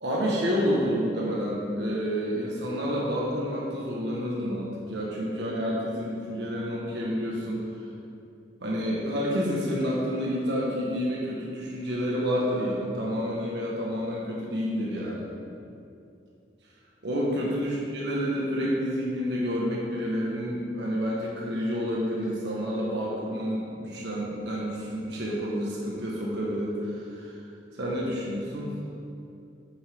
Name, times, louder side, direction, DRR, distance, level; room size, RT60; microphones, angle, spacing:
voice 1, 0.0-7.6 8.6-15.3 17.0-27.3 27.7-28.8, equal, 80° right, -4 dB, 1.5 m, -29 dB
8.9 x 8.9 x 3.7 m, 2.6 s
head